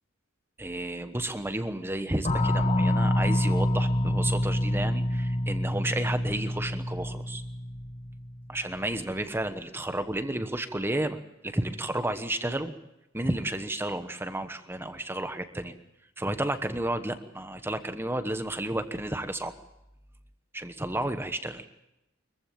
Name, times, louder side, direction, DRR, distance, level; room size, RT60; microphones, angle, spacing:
voice 1, 0.6-7.4 8.5-12.7 13.1-15.7 16.2-19.5 20.5-21.7, right 1 dB, 10° right, 9 dB, 1.1 m, -32 dB
sound 1, 2.2-8.6, left 1 dB, 35° left, 1.4 m, -27 dB
24.0 x 15.0 x 8.7 m, 0.88 s
head